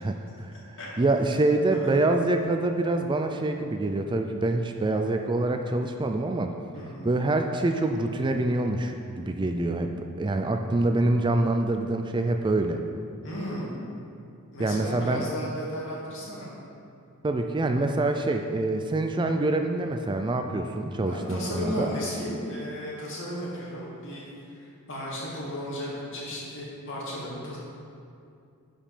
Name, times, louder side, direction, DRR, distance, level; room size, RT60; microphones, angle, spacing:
voice 1, 0.0-0.5 1.0-6.5 7.0-12.8 14.6-15.2 17.2-21.9, right 2 dB, 20° right, 5 dB, 0.4 m, -26 dB
voice 2, 6.7-7.1 13.2-13.8 14.5-16.5 21.1-27.6, equal, 60° left, -5 dB, 2.4 m, -34 dB
11.0 x 5.3 x 5.0 m, 2.5 s
head